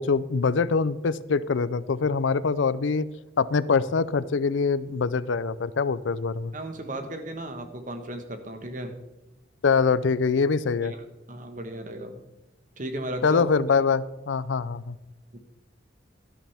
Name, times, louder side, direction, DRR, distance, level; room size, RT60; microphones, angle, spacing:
voice 1, 0.0-3.0 3.4-6.5 9.6-10.9 13.2-15.0, left 5 dB, 85° left, 17 dB, 0.5 m, -24 dB
voice 2, 6.5-9.0 10.8-12.2 12.8-13.4 15.3-15.4, right 1 dB, 45° right, 6 dB, 1.4 m, -35 dB
12.5 x 11.5 x 3.5 m, 1.0 s
head